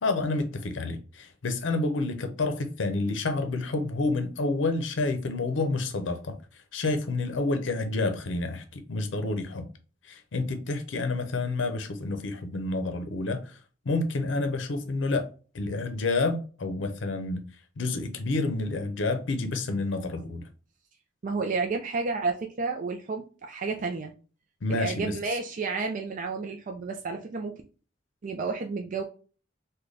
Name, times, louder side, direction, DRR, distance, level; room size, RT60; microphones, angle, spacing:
voice 1, 0.0-9.7 10.0-13.6 13.9-15.3 15.5-17.5 17.8-20.4 24.6-25.2, left 3 dB, 80° left, 0.6 m, -29 dB
voice 2, 21.2-24.1 24.7-27.5 28.2-29.0, right 4 dB, 45° right, 0.4 m, -31 dB
3.8 x 2.2 x 3.2 m
head